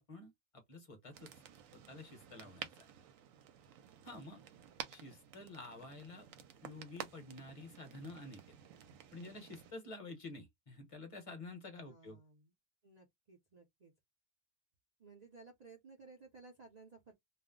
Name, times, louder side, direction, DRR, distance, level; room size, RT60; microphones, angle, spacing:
voice 1, 0.0-1.3 1.7-2.9 4.0-4.4 4.9-6.3 6.6-8.4 9.1-12.2, left 2 dB, 30° left, 0.8 m, -50 dB
sound 1, 1.1-9.7, right 9 dB, 75° right, 0.9 m, -52 dB
voice 2, 11.7-12.5 12.8-13.9 15.0-17.1, right 3 dB, 45° right, 0.6 m, -58 dB
2.4 x 2.0 x 3.6 m
omnidirectional pair, 1.4 m